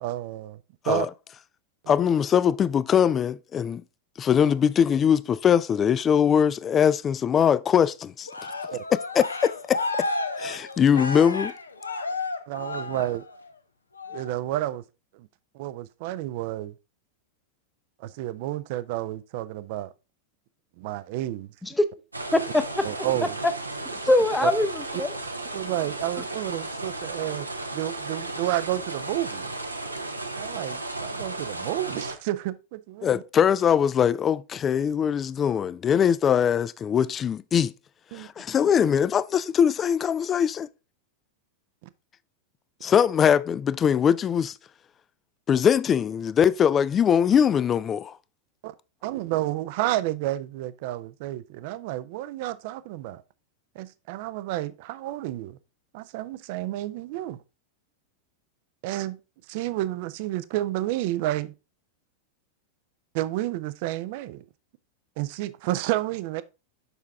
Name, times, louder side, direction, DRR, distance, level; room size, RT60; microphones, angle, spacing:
voice 1, 0.0-0.6 0.9-1.1 1.8-1.9 8.7-8.8 12.5-13.2 14.1-14.8 15.1-15.3 15.5-16.7 18.0-19.9 20.8-21.5 22.8-23.4 24.4-24.5 24.9-25.0 25.5-27.5 27.7-29.5 30.4-33.2 38.1-38.3 48.6-48.7 49.0-53.2 53.8-55.6 55.9-57.4 58.8-59.2 59.5-61.5 63.1-64.4 65.2-66.4, right 15 dB, 50° right, 0.5 m, -30 dB
voice 2, 1.9-3.8 4.2-8.3 9.1-9.8 10.4-11.5 33.0-37.7 38.1-40.7 42.8-44.5 45.5-48.1, left 8 dB, 25° left, 0.3 m, -22 dB
Cheering, 8.3-13.5 14.0-14.3, left 3 dB, 80° left, 0.8 m, -32 dB
sound 1, 22.1-32.2, right 2 dB, 85° right, 0.8 m, -34 dB
voice 3, 22.3-22.8 24.0-25.1, left 1 dB, 5° left, 0.7 m, -22 dB
6.9 x 5.7 x 3.5 m
figure-of-eight pair, 90°, 0 cm